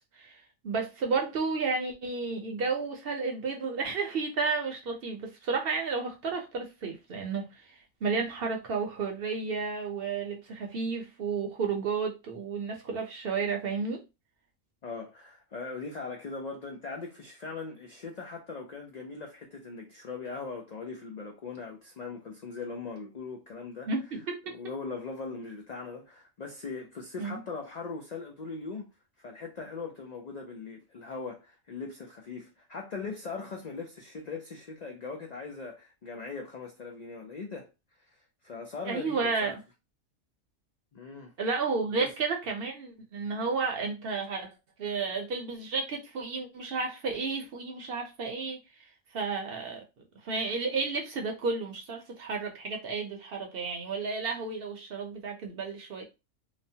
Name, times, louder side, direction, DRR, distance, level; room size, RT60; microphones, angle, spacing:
voice 1, 0.2-7.6 8.0-14.0 23.9-24.5 27.2-27.4 38.9-39.6 41.4-48.6 49.1-49.8 50.2-56.0, right 4 dB, 60° right, 0.7 m, -32 dB
voice 2, 14.8-23.9 24.5-28.9 29.2-37.7 38.4-39.6 40.9-41.3 41.9-42.1, left 4 dB, 85° left, 0.3 m, -40 dB
2.9 x 2.0 x 2.7 m
omnidirectional pair, 1.3 m